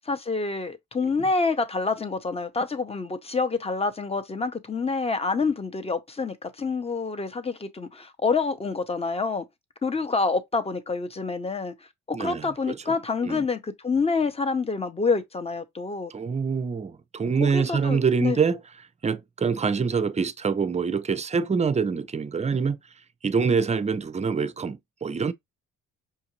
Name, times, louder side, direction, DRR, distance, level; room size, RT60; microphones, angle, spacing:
voice 1, 0.1-9.4 9.8-11.7 12.1-16.1 17.4-18.4, left 4 dB, 20° left, 0.7 m, -27 dB
voice 2, 12.1-12.8 13.2-13.5 16.1-18.6 19.0-22.8 23.2-25.3, right 5 dB, 25° right, 0.5 m, -25 dB
5.7 x 2.5 x 3.0 m
cardioid pair, 90°, 30 cm